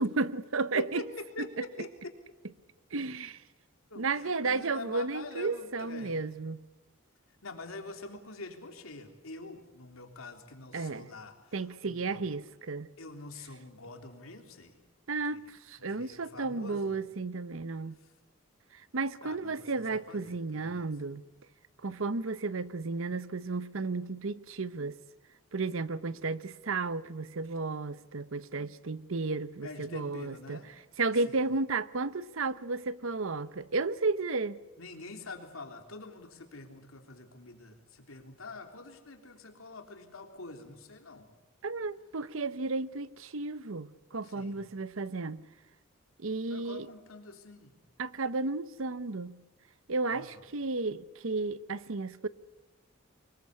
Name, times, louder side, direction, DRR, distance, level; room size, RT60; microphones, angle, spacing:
voice 1, 0.0-1.0 2.9-3.4 4.0-6.7 10.7-11.1 11.5-12.9 15.1-18.0 18.7-21.2 21.8-25.0 25.5-30.6 31.0-34.6 41.6-45.4 46.2-46.9 48.0-49.4 49.9-52.3, right 3 dB, 75° right, 0.8 m, -33 dB
voice 2, 0.7-2.2 3.9-6.2 7.4-12.2 13.0-14.8 15.3-15.5 15.8-17.0 18.0-18.1 19.2-20.9 29.6-30.7 31.1-31.4 34.8-41.3 44.2-44.6 46.5-47.8 50.1-50.4, left 2 dB, 85° left, 3.6 m, -45 dB
24.0 x 21.0 x 8.3 m
head